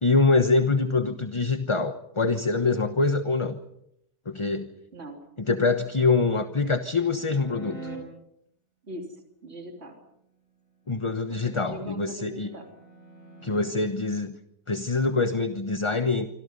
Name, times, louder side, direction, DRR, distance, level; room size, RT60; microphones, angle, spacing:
voice 1, 0.0-3.6 4.3-4.7 5.4-7.9 10.9-12.5 13.4-14.4 14.7-16.3, left 3 dB, 25° left, 9 dB, 1.0 m, -24 dB
sound 1, 5.7-8.0 11.4-13.7, right 2 dB, 40° left, 6.5 m, -45 dB
voice 2, 8.8-10.0 11.3-12.7, right 1 dB, 45° right, 2 dB, 3.5 m, -41 dB
26.5 x 26.5 x 5.4 m, 0.80 s
omnidirectional pair, 1.5 m